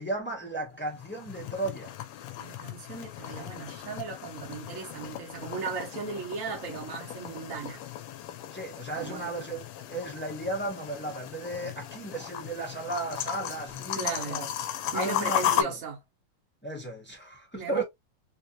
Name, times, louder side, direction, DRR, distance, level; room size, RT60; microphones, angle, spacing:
voice 1, 0.0-1.9 8.5-14.5 14.9-15.8 16.6-17.8, right 2 dB, 10° left, 0.5 m, -35 dB
sound 1, 0.8-15.6, left 11 dB, 75° left, 1.4 m, -36 dB
voice 2, 2.4-7.8 9.0-9.3 13.9-14.5 14.9-16.0 17.5-17.8, right 4 dB, 45° right, 1.4 m, -36 dB
3.6 x 2.8 x 2.6 m
omnidirectional pair, 2.3 m